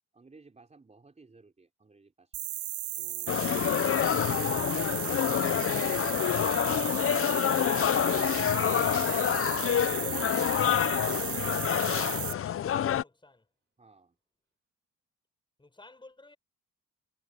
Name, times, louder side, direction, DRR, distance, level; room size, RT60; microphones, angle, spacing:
voice 1, 0.1-2.4 3.0-10.3 11.5-12.0 13.8-14.2, right 3 dB, 25° right, 3.8 m, -57 dB
sound 1, 2.3-12.3, right 14 dB, 75° right, 0.7 m, -35 dB
sound 2, 3.3-13.0, left 10 dB, 45° left, 0.7 m, -27 dB
sound 3, 6.3-10.3, right 5 dB, 40° right, 4.1 m, -54 dB
voice 2, 11.7-13.5 15.6-16.4, left 2 dB, 15° left, 6.9 m, -54 dB
cardioid pair, 90°, 30 cm